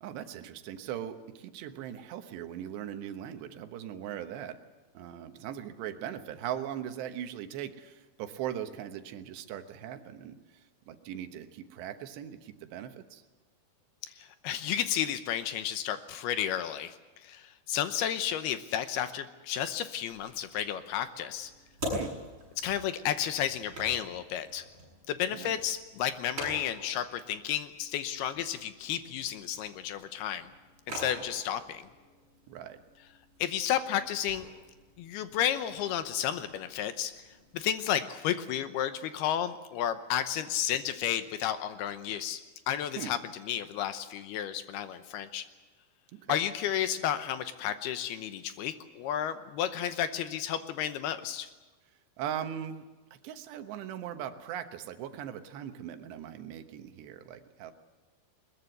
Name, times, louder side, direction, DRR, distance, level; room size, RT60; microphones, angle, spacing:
voice 1, 0.0-4.6 4.9-10.4 10.9-13.2 21.9-22.1 25.3-25.6 32.5-32.8 43.0-43.1 46.1-46.4 52.2-52.8 53.1-57.7, right 10 dB, 80° right, 8 dB, 3.3 m, -39 dB
voice 2, 14.0-21.5 22.6-24.6 25.1-30.5 30.9-31.9 33.4-34.5 35.0-37.2 37.5-42.4 42.7-45.4 46.3-51.5, left 10 dB, 75° left, 10 dB, 2.7 m, -32 dB
sound 1, 20.1-37.7, equal, 25° right, 8.4 m, -45 dB
22.0 x 21.0 x 8.0 m, 1.2 s
omnidirectional pair, 5.0 m